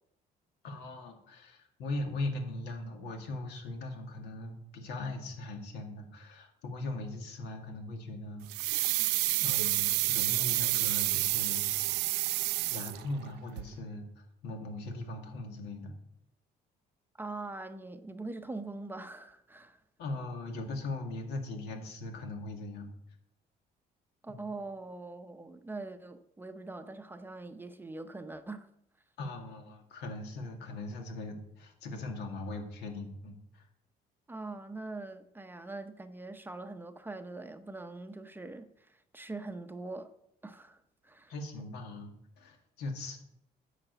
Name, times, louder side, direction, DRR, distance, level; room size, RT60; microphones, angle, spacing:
voice 1, 0.6-9.1 9.4-11.7 12.7-15.9 20.0-22.9 24.3-24.4 29.2-33.7 41.3-43.2, left 2 dB, 80° left, 2.0 m, -40 dB
sound 1, 8.5-13.3 13.6-13.7, right 18 dB, 90° right, 0.4 m, -29 dB
voice 2, 17.2-19.8 24.2-28.7 34.3-40.1 40.4-41.3, right 2 dB, 10° right, 0.7 m, -43 dB
9.9 x 5.0 x 8.0 m
cardioid pair, 110°, 17 cm